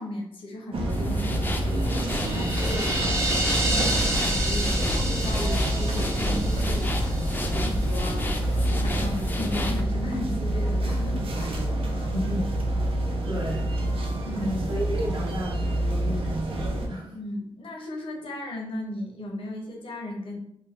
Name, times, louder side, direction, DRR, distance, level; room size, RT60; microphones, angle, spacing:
voice 1, 0.0-1.9 2.3-12.1 14.2-14.6 17.1-20.4, left 1 dB, 75° left, 1 dB, 0.7 m, -36 dB
sound 1, 0.7-16.9, right 1 dB, 90° right, 0.5 m, -27 dB
sound 2, 0.9-9.8, left 1 dB, 20° left, 0.3 m, -31 dB
sound 3, 1.7-7.9, right 1 dB, 30° right, 0.5 m, -30 dB
voice 2, 12.1-12.5 13.3-13.7 14.4-17.2, equal, 60° right, -2 dB, 0.8 m, -32 dB
2.6 x 2.2 x 3.3 m, 0.75 s
wide cardioid pair, 150°, 9 cm